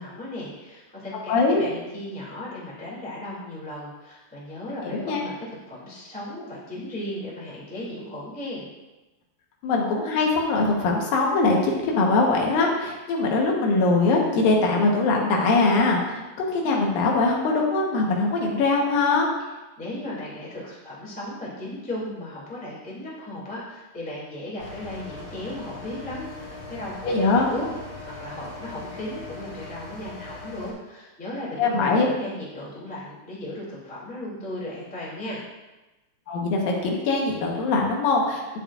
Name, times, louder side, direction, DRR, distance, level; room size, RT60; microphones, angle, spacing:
voice 1, 0.0-8.6 19.8-27.7 28.0-35.4, left 1 dB, 5° left, -6 dB, 1.8 m, -36 dB
voice 2, 1.3-1.6 4.9-5.2 9.6-19.3 27.0-27.5 31.6-32.1 36.3-38.6, left 3 dB, 80° left, -1 dB, 2.9 m, -22 dB
sound 1, 24.6-30.7, left 2 dB, 40° left, 3.2 m, -40 dB
11.0 x 7.4 x 2.4 m, 1.1 s
omnidirectional pair, 4.0 m